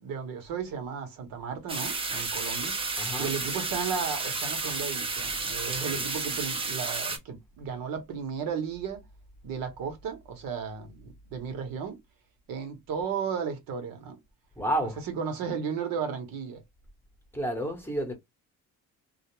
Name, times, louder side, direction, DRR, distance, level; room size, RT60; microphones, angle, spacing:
voice 1, 0.0-2.7 3.2-9.0 9.4-12.0 12.5-14.2 15.1-16.6, right 6 dB, 80° right, 1.0 m, -34 dB
sound 1, 1.7-7.2, right 3 dB, 15° right, 0.4 m, -32 dB
voice 2, 3.0-3.3 5.6-6.1 14.6-15.0 17.3-18.1, right 1 dB, 5° left, 0.8 m, -31 dB
2.4 x 2.0 x 3.0 m
cardioid pair, 135°, 34 cm